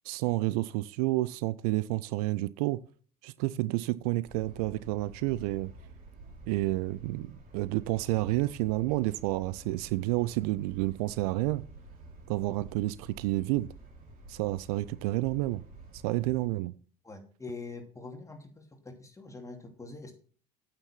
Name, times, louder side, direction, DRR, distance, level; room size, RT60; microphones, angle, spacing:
voice 1, 0.1-2.8 3.2-5.7 6.5-11.7 12.3-13.7 14.3-15.6 16.0-16.7, right 18 dB, 65° right, 0.5 m, -30 dB
sound 1, 4.2-16.5, right 2 dB, 40° right, 4.2 m, -50 dB
voice 2, 17.0-20.1, left 3 dB, 15° left, 2.7 m, -44 dB
8.9 x 6.9 x 5.8 m
figure-of-eight pair, 65°, 21 cm